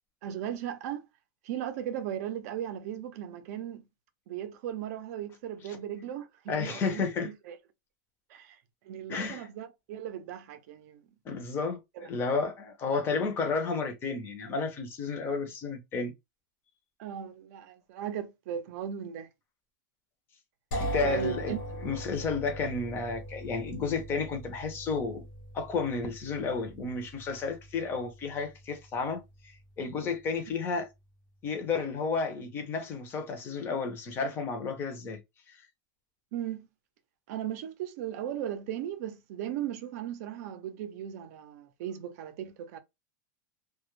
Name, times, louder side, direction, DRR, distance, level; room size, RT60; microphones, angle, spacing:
voice 1, 0.2-1.0 1.4-3.8 4.3-7.6 8.3-8.6 8.8-11.0 11.9-12.1 17.0-19.3 21.0-21.6 36.3-36.7 37.3-42.8, right 10 dB, 55° right, 0.5 m, -37 dB
voice 2, 6.5-7.3 9.1-9.5 11.3-16.1 20.8-25.2 25.5-29.2 29.8-30.9 31.4-35.2, left 4 dB, 20° left, 0.6 m, -32 dB
sound 1, 20.7-30.5, equal, 85° left, 0.9 m, -41 dB
2.2 x 2.0 x 3.0 m
supercardioid pair, 165°, 10 cm